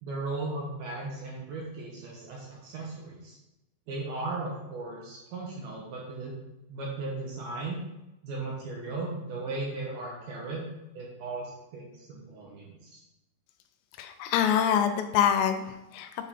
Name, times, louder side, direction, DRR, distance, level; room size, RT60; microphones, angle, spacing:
voice 1, 0.0-3.4 3.9-6.3 6.7-7.8 8.2-10.7 10.9-12.7, right 3 dB, 75° right, -3 dB, 2.3 m, -36 dB
voice 2, 14.0-16.3, left 9 dB, 85° left, 7 dB, 3.2 m, -26 dB
8.5 x 3.6 x 4.2 m, 0.93 s
omnidirectional pair, 5.8 m